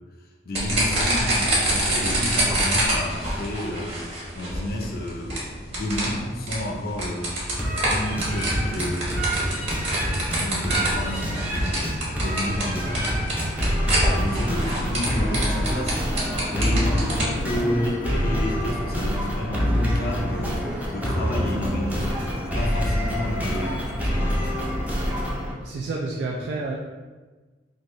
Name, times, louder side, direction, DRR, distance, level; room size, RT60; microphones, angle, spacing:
voice 1, 0.4-4.0 4.3-5.4 5.7-7.4 7.9-9.2 10.3-13.3 14.2-16.0 16.5-24.5, left 1 dB, 55° left, 1 dB, 0.6 m, -30 dB
sound 1, 0.5-17.4, right 1 dB, 35° right, 1.1 m, -26 dB
sound 2, 7.6-25.5, equal, 10° right, 0.5 m, -26 dB
voice 2, 25.2-26.8, right 3 dB, 70° right, -2 dB, 0.4 m, -31 dB
4.0 x 2.6 x 3.1 m, 1.3 s
head